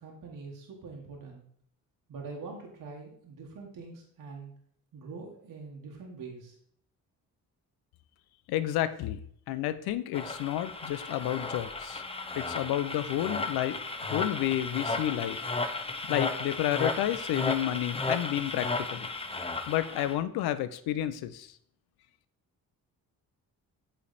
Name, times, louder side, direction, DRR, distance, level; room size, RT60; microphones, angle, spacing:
voice 1, 0.0-1.4 2.1-4.5 4.9-6.5, right 4 dB, 60° right, 0 dB, 1.3 m, -44 dB
voice 2, 8.5-9.2 9.5-12.0 12.4-13.8 14.1-15.5 16.1-19.1 19.7-21.5, left 12 dB, 85° left, 13 dB, 0.5 m, -30 dB
sound 1, 10.1-20.1, left 3 dB, 15° left, 0.7 m, -34 dB
8.2 x 3.3 x 4.0 m, 0.66 s
cardioid pair, 75°, 37 cm